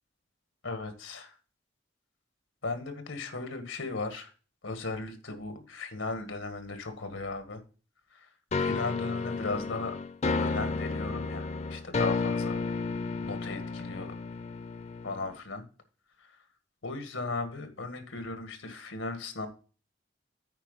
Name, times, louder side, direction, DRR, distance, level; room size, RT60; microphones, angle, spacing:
voice 1, 0.6-1.4 2.6-4.3 4.6-7.6 8.1-10.0 10.4-12.6 13.2-14.1 15.0-15.6 16.2-16.3 16.8-19.5, left 3 dB, 90° left, 8 dB, 1.9 m, -37 dB
sound 1, 8.5-15.4, left 4 dB, 35° left, 0.6 m, -32 dB
9.0 x 5.0 x 5.5 m, 0.37 s
head